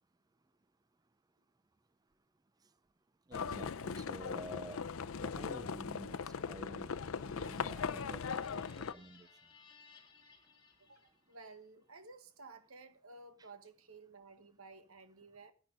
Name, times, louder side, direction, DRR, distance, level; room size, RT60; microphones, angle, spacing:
Livestock farm animals working animals, 3.3-8.9, left 6 dB, 70° left, 0.6 m, -39 dB
voice 1, 3.3-4.8 5.2-6.9 7.3-9.3 13.4-13.5, right 1 dB, 20° right, 0.5 m, -50 dB
sound 1, 6.8-11.5, left 4 dB, 20° left, 1.9 m, -63 dB
voice 2, 10.8-15.5, right 3 dB, 75° right, 1.4 m, -55 dB
10.5 x 8.8 x 5.1 m
head